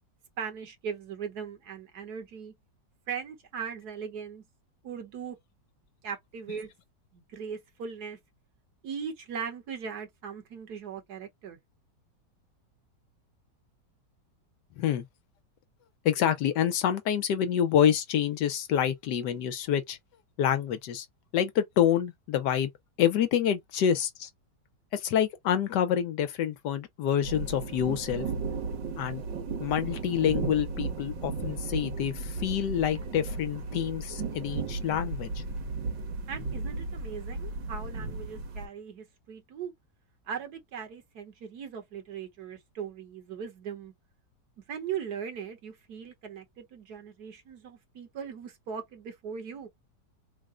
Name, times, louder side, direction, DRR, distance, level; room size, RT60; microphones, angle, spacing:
voice 1, 0.4-2.5 3.1-4.4 4.8-5.4 6.0-6.7 7.1-8.2 8.8-11.6 36.3-39.7 40.3-43.9 44.7-49.7, right 7 dB, 65° right, 1.5 m, -39 dB
voice 2, 16.0-20.0 20.4-21.1 21.3-22.7 23.0-24.3 24.9-28.3 29.0-29.2 29.6-35.4, left 9 dB, 75° left, 1.3 m, -27 dB
sound 1, 27.2-38.7, right 4 dB, 85° right, 1.8 m, -35 dB
3.7 x 2.1 x 3.7 m
omnidirectional pair, 1.9 m